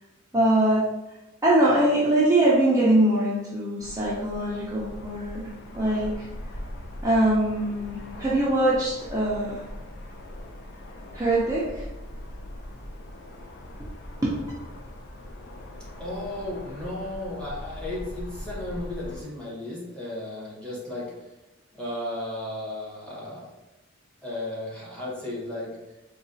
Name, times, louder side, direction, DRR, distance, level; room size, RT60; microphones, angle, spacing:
voice 1, 0.3-0.8 1.4-6.3 7.0-9.6 11.1-11.9 14.2-14.3, right 1 dB, 15° right, -8 dB, 0.5 m, -22 dB
sound 1, 3.8-19.2, left 1 dB, 55° left, 0.5 m, -40 dB
voice 2, 16.0-21.1 21.8-23.5 24.2-25.7, left 1 dB, 5° left, -6 dB, 1.0 m, -34 dB
3.9 x 2.3 x 2.6 m, 0.99 s
head